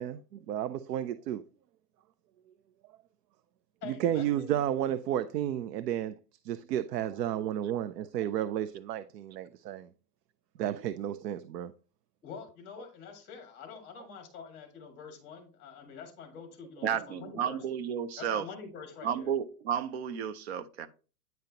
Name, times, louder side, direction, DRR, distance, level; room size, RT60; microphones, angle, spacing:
voice 1, 0.0-1.4 3.8-6.1 6.4-9.9 10.6-11.7, right 11 dB, 85° right, 0.6 m, -32 dB
voice 2, 3.8-4.6 12.2-17.6 18.2-19.3, left 6 dB, 20° left, 1.8 m, -46 dB
voice 3, 16.8-18.4 19.0-20.9, right 8 dB, 45° right, 0.5 m, -32 dB
9.4 x 5.2 x 2.8 m
supercardioid pair, 170°, 47 cm